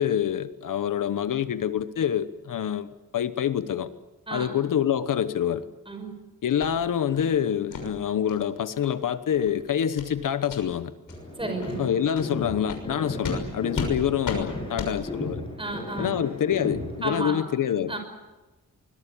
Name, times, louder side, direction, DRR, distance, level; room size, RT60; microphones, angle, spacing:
voice 1, 0.0-2.9 3.1-3.9 4.3-5.7 6.4-10.9 11.8-15.4 16.0-17.9, left 9 dB, 70° left, 12 dB, 1.1 m, -26 dB
sound 1, 6.6-6.7 7.1-7.3 7.7-7.9 8.3-8.4 8.8-8.9 9.3-9.5 10.0-10.1 10.4-10.6 11.1-11.2 11.6-11.7 12.1-12.3 12.7-12.8 13.2-13.4 13.7-13.9 14.2-14.4 14.8-14.9, left 4 dB, 85° left, 6.3 m, -33 dB
sound 2, 11.1-17.1, left 1 dB, 15° left, 7.2 m, -35 dB
voice 2, 11.4-11.8 15.6-16.3 17.0-17.4 17.9-18.0, right 2 dB, 15° right, 5 dB, 5.9 m, -32 dB
25.0 x 21.5 x 8.5 m, 1.1 s
wide cardioid pair, 170°, 33 cm